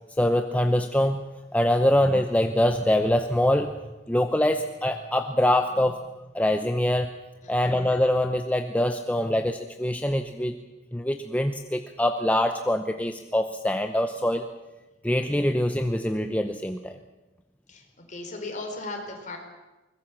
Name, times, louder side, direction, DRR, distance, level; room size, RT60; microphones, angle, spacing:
voice 1, 0.2-1.2 1.5-3.7 4.1-6.0 6.3-7.1 7.5-10.6 10.9-14.5 15.0-17.0, left 1 dB, 10° left, 6 dB, 0.7 m, -24 dB
voice 2, 7.4-7.8 17.7-19.4, left 2 dB, 40° left, 3 dB, 4.3 m, -37 dB
22.5 x 20.0 x 7.3 m, 1.1 s
head